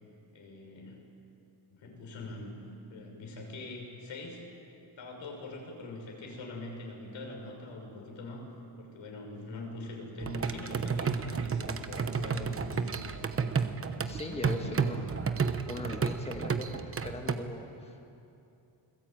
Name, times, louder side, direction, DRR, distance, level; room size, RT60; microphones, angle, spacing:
voice 1, 0.3-1.0 1.7-4.4 5.0-8.5 8.8-13.3 13.8-14.8, left 2 dB, 75° left, 1 dB, 6.3 m, -43 dB
sound 1, 10.2-17.4, right 5 dB, 30° right, 1.0 m, -32 dB
voice 2, 14.0-15.0 15.7-18.2, left 2 dB, 15° left, 3 dB, 1.6 m, -40 dB
29.0 x 21.0 x 9.1 m, 2.7 s
wide cardioid pair, 175°, 46 cm